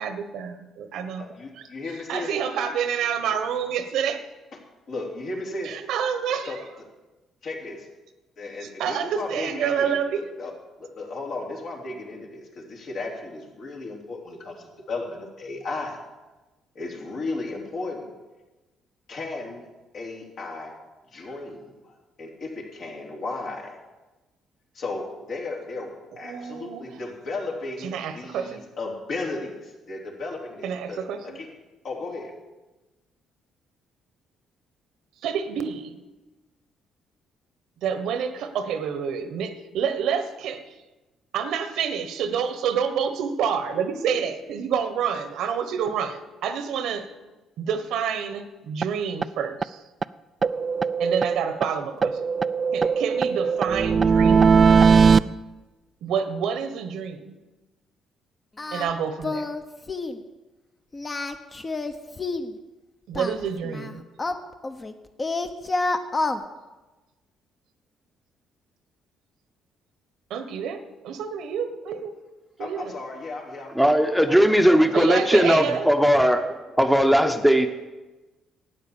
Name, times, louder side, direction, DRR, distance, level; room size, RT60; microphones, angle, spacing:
voice 1, 0.0-1.2 2.1-4.3 5.6-6.6 8.6-10.2 26.2-26.8 27.8-28.7 30.6-31.4 35.2-36.0 37.8-40.6 41.3-47.1 47.6-49.8 51.0-52.3 52.7-54.5 56.0-57.4 58.7-59.5 63.1-64.0 70.3-72.1 72.6-72.9 74.9-75.9, right 7 dB, 80° right, 10 dB, 1.1 m, -28 dB
voice 2, 1.2-2.3 3.3-3.4 4.9-5.8 6.5-6.6 7.4-7.9 8.4-10.5 10.8-16.0 16.7-18.1 19.1-19.7 19.9-20.7 21.1-23.8 24.7-31.5 31.8-32.3 72.6-75.8, left 3 dB, 65° left, -1 dB, 3.3 m, -35 dB
sound 1, 48.8-48.9 49.2-49.3 49.6-49.7 50.0-50.1 50.4-51.7 52.0-55.2, right 5 dB, 40° right, 0.3 m, -19 dB
Singing, 58.6-58.9 59.2-59.6 59.9-60.2 60.9-62.5 63.1-64.9 65.2-66.4, left 3 dB, 25° left, 1.0 m, -28 dB
voice 3, 73.7-77.7, equal, ahead, 6 dB, 0.9 m, -18 dB
12.5 x 9.0 x 7.2 m, 1.1 s
cardioid pair, 90°, 0 cm